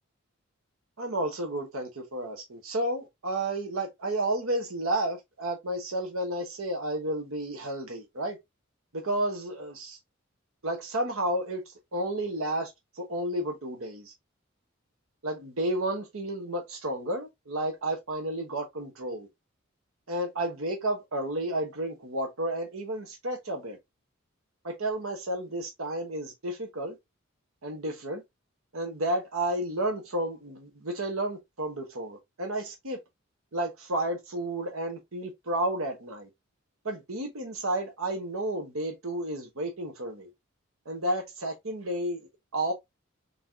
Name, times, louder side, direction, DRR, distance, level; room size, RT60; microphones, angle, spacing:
voice 1, 1.0-8.4 8.9-10.0 10.6-14.1 15.2-19.3 20.1-23.8 24.6-27.0 27.6-28.2 28.7-33.0 33.5-36.3 36.8-40.3 40.8-42.7, right 1 dB, 85° right, 1.1 m, -32 dB
3.8 x 3.8 x 2.6 m
head